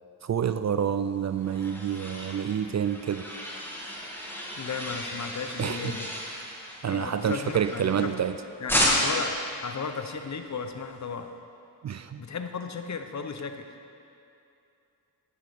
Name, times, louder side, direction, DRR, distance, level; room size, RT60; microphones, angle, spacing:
voice 1, 0.2-3.2 5.6-6.0 6.8-8.4 11.8-12.2, right 8 dB, 40° right, 10 dB, 0.4 m, -28 dB
sound 1, 0.9-8.3 8.7-9.3, equal, 5° left, 2.3 m, -32 dB
voice 2, 4.6-6.1 6.8-8.1 8.6-11.3 12.2-13.8, left 5 dB, 40° left, 7 dB, 0.8 m, -35 dB
10.5 x 9.4 x 3.6 m, 2.6 s
supercardioid pair, 45°, 42 cm